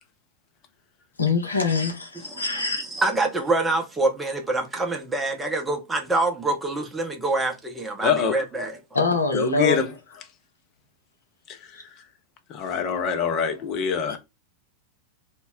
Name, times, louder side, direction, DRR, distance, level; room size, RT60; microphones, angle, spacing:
voice 1, 1.2-3.0 8.9-9.8, left 3 dB, 80° left, 0.6 m, -24 dB
voice 2, 2.2-8.7, right 2 dB, 10° right, 0.6 m, -26 dB
voice 3, 8.0-8.4 9.3-9.9 11.5-12.1 12.5-14.2, left 7 dB, 35° left, 0.5 m, -25 dB
2.2 x 2.0 x 3.6 m
figure-of-eight pair, 90°, 0 cm